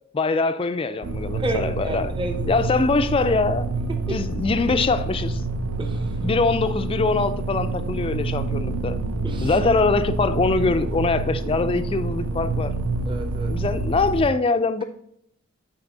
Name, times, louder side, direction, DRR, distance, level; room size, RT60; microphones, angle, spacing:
voice 1, 0.1-2.1 2.5-3.7 4.1-5.4 6.2-9.0 9.4-12.7 13.5-14.8, left 3 dB, 25° left, 0.3 m, -23 dB
sound 1, 1.0-14.3, right 2 dB, 80° right, 0.6 m, -27 dB
voice 2, 1.3-2.5 3.9-4.2 5.8-6.3 9.2-9.6 13.1-13.5, right 2 dB, 20° right, 0.7 m, -31 dB
9.4 x 4.1 x 3.9 m
head